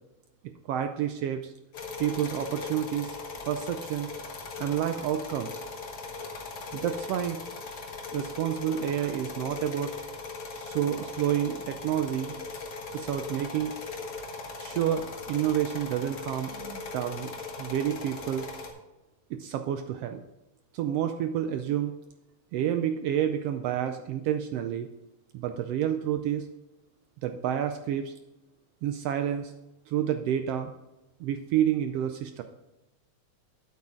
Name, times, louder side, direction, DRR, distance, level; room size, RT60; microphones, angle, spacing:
voice 1, 0.6-1.5 2.0-3.2 3.5-4.1 4.6-5.5 6.7-7.4 8.1-9.9 10.5-12.4 12.9-13.7 14.6-17.3 17.6-18.5 19.3-20.2 20.7-21.9 22.5-24.9 25.3-26.5 27.2-28.1 28.8-29.5 29.9-30.7 31.2-32.4, right 10 dB, 85° right, 7 dB, 1.4 m, -29 dB
sound 1, 1.7-18.7, left 3 dB, 50° left, 1.2 m, -39 dB
8.6 x 8.2 x 3.7 m, 1.0 s
omnidirectional pair, 3.3 m